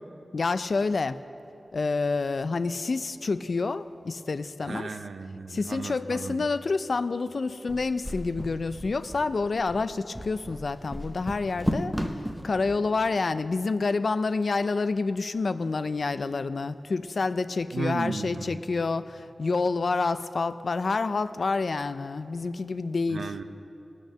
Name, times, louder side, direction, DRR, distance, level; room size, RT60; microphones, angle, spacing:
voice 1, 0.3-1.2 1.7-4.9 5.5-23.3, left 3 dB, 65° left, 13 dB, 0.4 m, -28 dB
voice 2, 4.6-6.4 17.7-18.5 23.1-23.4, right 4 dB, 85° right, 9 dB, 0.5 m, -35 dB
sound 1, 7.7-12.8, equal, ahead, 0.7 m, -34 dB
18.5 x 6.5 x 6.3 m, 3.0 s
wide cardioid pair, 100°, 0 cm